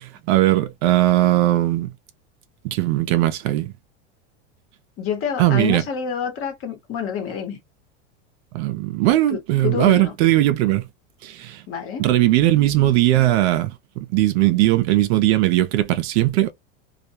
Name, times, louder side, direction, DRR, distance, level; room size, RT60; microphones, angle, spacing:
voice 1, 0.0-1.9 2.6-3.7 5.4-5.8 8.5-10.9 11.2-11.6 12.0-16.5, right 15 dB, 65° right, 0.6 m, -19 dB
voice 2, 5.0-7.6 9.3-10.1 11.7-12.0, left 7 dB, 35° left, 1.1 m, -28 dB
2.3 x 2.2 x 2.7 m
supercardioid pair, 120°, 35 cm